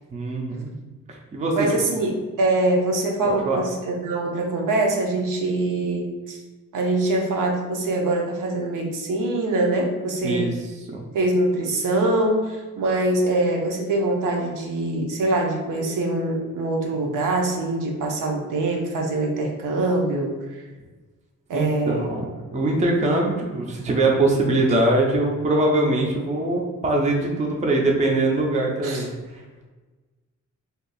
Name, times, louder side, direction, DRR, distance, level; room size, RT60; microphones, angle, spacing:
voice 1, 0.1-0.7 1.3-1.8 3.3-3.6 10.2-10.5 10.9-11.0 21.5-29.1 29.3-29.4, right 2 dB, 25° right, 0 dB, 0.4 m, -22 dB
voice 2, 1.6-6.4 6.7-10.5 11.1-20.4 21.5-22.1 28.8-29.0, right 2 dB, 85° right, 1 dB, 0.7 m, -23 dB
2.7 x 2.4 x 3.9 m, 1.3 s
wide cardioid pair, 155°, 31 cm